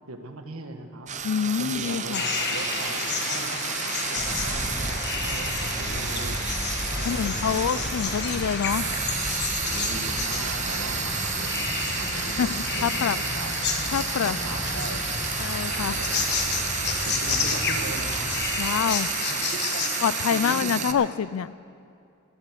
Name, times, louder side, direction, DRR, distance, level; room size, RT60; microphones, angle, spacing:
voice 1, 0.1-1.1 1.6-6.4 7.0-8.1 9.0-9.3 9.6-13.8 14.2-15.1 15.5-16.4 16.9-18.3 18.7-18.9 19.2-20.0 20.3-21.1, right 2 dB, 85° right, 6 dB, 1.4 m, -39 dB
Frying (food), 1.1-20.9, right 8 dB, 35° right, 0.8 m, -32 dB
voice 2, 1.2-2.2 7.0-8.9 12.4-12.5 12.8-13.2 13.9-14.4 15.4-16.0 18.6-19.1 20.0-21.5, left 7 dB, 75° left, 19 dB, 0.4 m, -26 dB
sound 1, 2.1-20.6, left 5 dB, 55° left, 1.4 m, -31 dB
sound 2, 4.1-18.7, equal, ahead, 1.7 m, -36 dB
14.5 x 13.0 x 6.9 m, 2.5 s
head